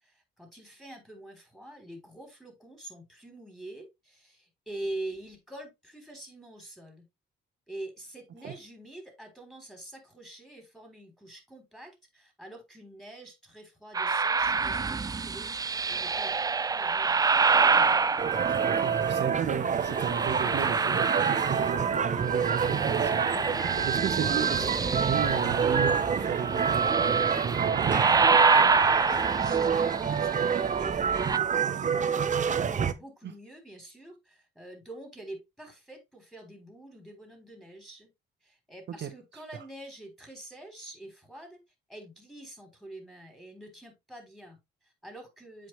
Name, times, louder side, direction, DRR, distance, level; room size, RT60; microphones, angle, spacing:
voice 1, 0.0-7.1 7.7-16.4 16.7-17.4 28.7-32.3 32.7-38.1 38.4-41.6 41.9-45.7, right 1 dB, ahead, 3.6 m, -45 dB
sound 1, 13.9-19.3 19.8-22.0 22.3-31.4, right 4 dB, 20° right, 0.4 m, -27 dB
sound 2, 18.2-32.9, right 7 dB, 40° right, 0.8 m, -27 dB
voice 2, 18.6-23.2 23.9-28.0 33.2-33.3 39.0-39.1, right 8 dB, 65° right, 1.1 m, -34 dB
sound 3, 19.6-28.1, left 12 dB, 85° left, 0.6 m, -45 dB
7.8 x 5.0 x 3.2 m
cardioid pair, 90°, 20 cm